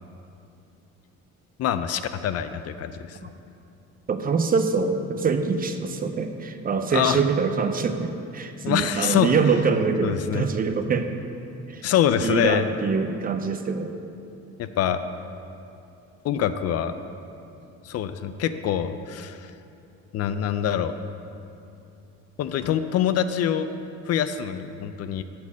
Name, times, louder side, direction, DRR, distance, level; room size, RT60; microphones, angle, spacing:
voice 1, 1.6-3.2 6.9-7.2 8.6-9.3 10.0-10.5 11.8-12.7 14.6-15.0 16.2-16.9 17.8-19.5 20.1-20.9 22.4-23.7 24.1-25.2, left 9 dB, 55° left, 11 dB, 0.5 m, -25 dB
voice 2, 4.1-11.1 11.7-11.9 12.2-13.9, right 5 dB, 30° right, 7 dB, 0.5 m, -24 dB
9.5 x 4.3 x 7.2 m, 2.7 s
cardioid pair, 115°, 29 cm